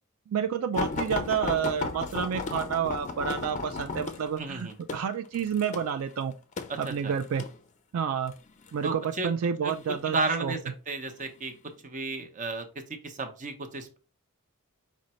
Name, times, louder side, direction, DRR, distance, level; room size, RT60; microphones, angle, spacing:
voice 1, 0.3-6.3 6.8-7.4 7.9-8.3 8.7-10.5, right 7 dB, 70° right, 7 dB, 0.3 m, -29 dB
sound 1, 0.7-7.6 8.3-8.8 9.7-10.3 11.1-11.3 11.6-11.7, left 3 dB, 35° left, 0.4 m, -34 dB
voice 2, 4.4-4.7 6.7-7.1 8.8-9.3 9.6-9.7 10.0-10.6 10.9-11.5 11.8-12.7 13.0-14.0, right 3 dB, 35° right, 7 dB, 0.7 m, -32 dB
5.0 x 2.1 x 4.1 m, 0.35 s
head